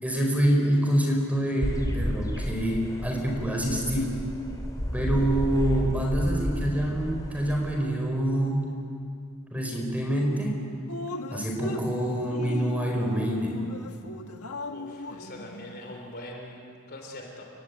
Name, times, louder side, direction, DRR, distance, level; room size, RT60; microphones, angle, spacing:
voice 1, 0.0-4.2 4.9-8.7 9.5-10.6 11.3-13.6, right 1 dB, 5° right, 0 dB, 4.8 m, -26 dB
sound 1, 1.6-7.7, equal, 15° left, 3.2 m, -32 dB
Drip, 10.9-16.1, left 2 dB, 85° left, 1.5 m, -38 dB
voice 2, 14.7-17.5, left 1 dB, 45° left, 2 dB, 3.4 m, -42 dB
29.5 x 16.5 x 9.5 m, 2.5 s
head